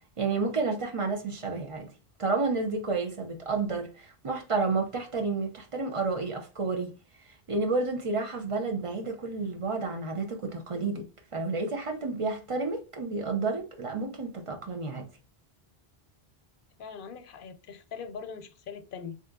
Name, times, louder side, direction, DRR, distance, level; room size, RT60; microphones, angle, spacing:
voice 1, 0.2-1.9 2.2-6.9 7.5-15.1, right 3 dB, 40° right, 0.5 m, -30 dB
voice 2, 16.8-19.2, left 6 dB, 65° left, 0.7 m, -41 dB
3.6 x 2.8 x 2.2 m
omnidirectional pair, 1.0 m